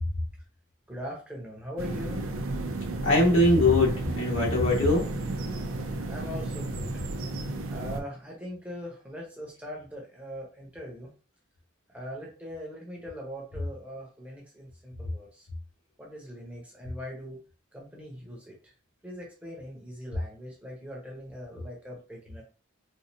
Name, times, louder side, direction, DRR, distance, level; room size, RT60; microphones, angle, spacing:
voice 1, 0.9-2.3 6.0-7.1 7.7-11.1 11.9-15.5 16.0-17.4 17.7-18.7 19.0-22.4, equal, 5° right, -2 dB, 0.9 m, -41 dB
sound 1, 1.8-8.0, right 2 dB, 85° right, 0.6 m, -33 dB
voice 2, 3.0-5.0, left 2 dB, 70° left, -4 dB, 1.7 m, -21 dB
4.3 x 2.5 x 2.7 m, 0.38 s
head